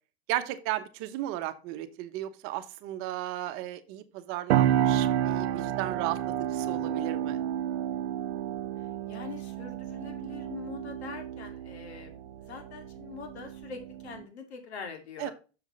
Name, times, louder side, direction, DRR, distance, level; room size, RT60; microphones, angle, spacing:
voice 1, 0.3-7.4 15.2-15.3, right 14 dB, 45° right, 10 dB, 1.0 m, -35 dB
sound 1, 4.5-14.2, right 11 dB, 85° right, 0.6 m, -30 dB
voice 2, 9.0-12.2 12.5-15.3, left 6 dB, 85° left, 5 dB, 2.5 m, -43 dB
7.0 x 6.9 x 4.0 m, 0.33 s
supercardioid pair, 130°, 32 cm